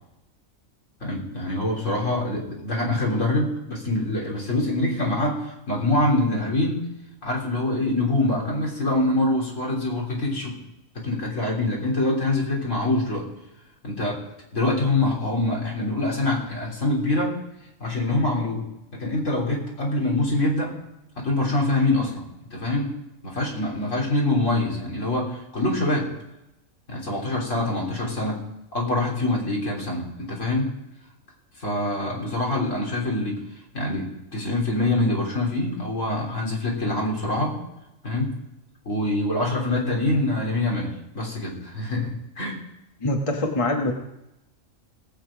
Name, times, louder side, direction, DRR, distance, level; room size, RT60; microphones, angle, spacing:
voice 1, 1.0-6.9 7.2-10.6 11.0-13.3 13.8-14.2 14.5-17.4 17.8-18.7 18.9-20.7 21.2-22.9 23.2-26.1 26.9-28.4 28.7-30.7 31.6-33.4 33.7-37.6 38.0-38.4 38.9-42.6, left 2 dB, 70° left, -3 dB, 3.8 m, -25 dB
voice 2, 43.0-43.9, left 1 dB, 25° left, 2 dB, 1.3 m, -24 dB
18.5 x 8.1 x 5.1 m, 0.89 s
omnidirectional pair, 1.3 m